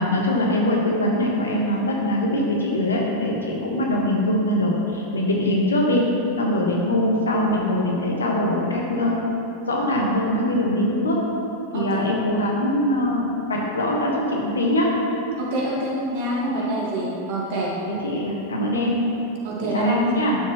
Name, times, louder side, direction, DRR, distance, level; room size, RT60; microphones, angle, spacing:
voice 1, 0.0-6.0 6.4-9.2 9.7-11.2 11.7-14.9 16.4-16.5 17.9-19.0 19.6-20.4, left 1 dB, 70° left, -2 dB, 1.5 m, -22 dB
voice 2, 11.7-12.1 15.4-17.7 19.4-20.0, right 1 dB, 50° right, -4 dB, 2.0 m, -26 dB
11.0 x 7.2 x 3.1 m, 2.9 s
figure-of-eight pair, 90°, 0 cm